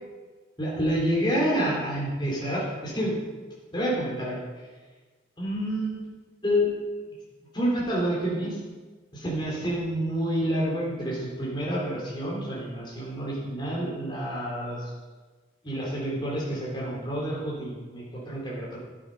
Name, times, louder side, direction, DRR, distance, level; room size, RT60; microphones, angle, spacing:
voice 1, 0.6-3.2 3.7-4.4 5.4-6.0 6.4-6.7 7.5-8.6 9.1-14.9 15.6-18.8, equal, 25° left, -4 dB, 3.7 m, -28 dB
12.5 x 8.5 x 5.4 m, 1.3 s
head